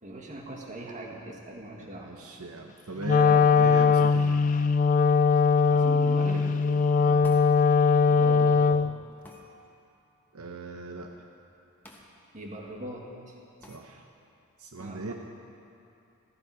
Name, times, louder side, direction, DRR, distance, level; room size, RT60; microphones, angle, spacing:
voice 1, 0.0-2.1 5.7-6.6 8.1-8.8 12.3-13.4 14.8-15.1, right 1 dB, 35° right, 0 dB, 1.9 m, -40 dB
voice 2, 1.8-4.5 7.0-7.3 10.3-11.1 13.7-14.0 14.6-15.1, right 2 dB, 75° right, 3 dB, 0.9 m, -38 dB
Wind instrument woodwind instrument, 3.0-9.0, left 5 dB, 35° left, 0.3 m, -21 dB
sound 1, 7.2-7.5 9.2-9.4 11.8-12.1 12.4-12.5 13.6-13.8, left 1 dB, 10° left, 1.5 m, -49 dB
16.0 x 14.5 x 4.9 m, 2.7 s
head